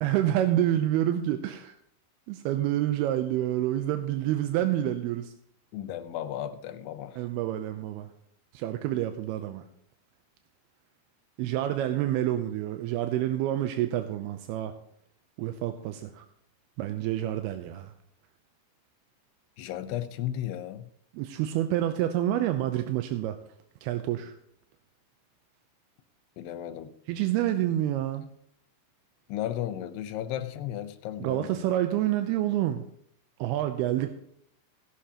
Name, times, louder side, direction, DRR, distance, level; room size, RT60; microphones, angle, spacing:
voice 1, 0.0-1.7 2.3-5.3 7.2-8.1 8.5-9.6 11.4-14.7 15.4-16.2 16.8-17.9 21.1-23.4 23.8-24.3 27.1-28.3 31.2-32.8 33.4-34.1, right 12 dB, 80° right, 7 dB, 2.4 m, -28 dB
voice 2, 5.7-7.3 19.6-20.9 26.4-26.9 29.3-31.7, left 11 dB, 80° left, 10 dB, 2.8 m, -35 dB
17.5 x 11.5 x 2.9 m, 0.66 s
omnidirectional pair, 5.0 m